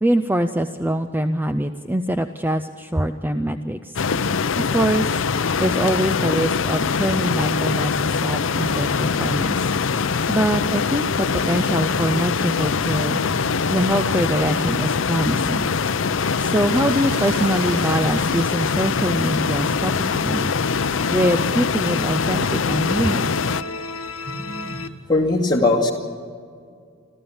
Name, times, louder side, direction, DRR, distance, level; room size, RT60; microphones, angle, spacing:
voice 1, 0.0-4.0 4.6-5.2 5.6-9.7 10.3-13.2 13.7-15.7 16.4-20.5 21.1-23.3, right 1 dB, 10° right, 8 dB, 0.4 m, -23 dB
sound 1, 4.0-23.6, left 5 dB, 70° left, 0.6 m, -23 dB
sound 2, 7.5-24.9, left 4 dB, 85° left, 1.2 m, -38 dB
sound 3, 15.3-20.7 20.9-21.0, right 1 dB, 50° right, 4.9 m, -40 dB
voice 2, 24.2-24.8 25.1-25.9, left 2 dB, 20° left, -2 dB, 2.4 m, -20 dB
27.0 x 14.0 x 7.2 m, 2.2 s
head